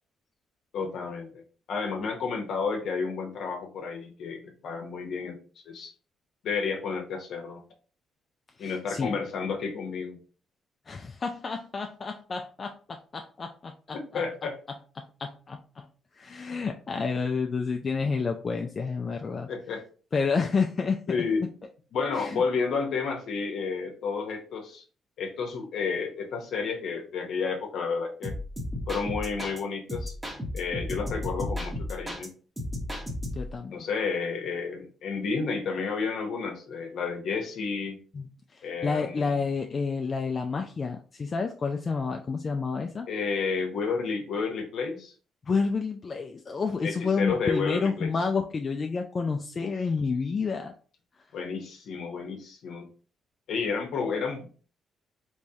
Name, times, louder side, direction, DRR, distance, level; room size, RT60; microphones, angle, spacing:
voice 1, 0.7-1.4 1.7-5.4 5.7-5.9 6.4-7.6 8.6-10.2 13.9-14.6 19.5-19.8 21.1-21.5 21.9-24.8 25.2-28.3 28.9-30.1 30.5-32.3 33.7-38.0 38.6-39.4 43.1-45.1 46.8-48.3 49.6-49.8 51.3-52.9 53.5-54.5, left 5 dB, 70° left, 2 dB, 0.8 m, -31 dB
voice 2, 8.6-9.1 10.9-14.2 15.2-15.9 16.1-19.5 20.1-21.2 22.1-22.4 33.4-33.8 38.1-43.1 45.5-50.7, left 5 dB, 40° left, 4 dB, 0.3 m, -30 dB
sound 1, 28.2-29.6 29.9-32.3 32.6-33.6, left 1 dB, 15° right, 1.0 m, -34 dB
3.4 x 3.1 x 2.7 m, 0.39 s
cardioid pair, 90°, 0 cm